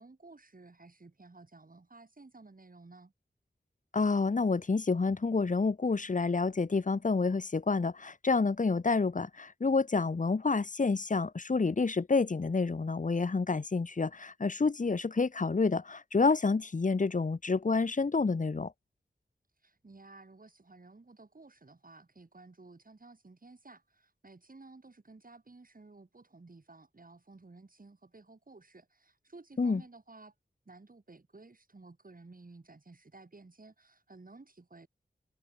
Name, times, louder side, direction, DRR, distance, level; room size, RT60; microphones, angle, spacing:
voice 1, 0.0-3.1 19.6-30.3 30.7-34.9, right 3 dB, 50° right, 4.1 m, -54 dB
voice 2, 3.9-18.7 29.6-29.8, left 4 dB, 45° left, 0.9 m, -28 dB
wide cardioid pair, 50°, 18 cm